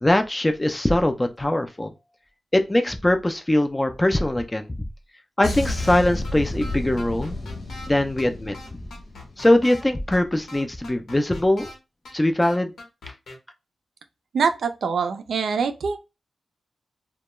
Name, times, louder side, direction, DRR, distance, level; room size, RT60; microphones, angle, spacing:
voice 1, 0.0-1.9 2.5-4.7 5.4-7.3 7.9-8.5 9.4-11.7 12.1-12.7, left 1 dB, 15° left, 0.3 m, -21 dB
sound 1, 5.4-10.0 10.2-10.5, left 2 dB, 55° left, 0.7 m, -32 dB
sound 2, 5.8-5.9 6.2-6.3 6.6-7.9 8.2-8.3 8.5-9.8 10.1-10.2 10.5-11.7 12.0-12.1 12.4-13.3, left 2 dB, 90° left, 0.9 m, -41 dB
voice 2, 14.3-16.0, right 5 dB, 80° right, 0.4 m, -24 dB
2.2 x 2.2 x 2.9 m
wide cardioid pair, 105°, 0 cm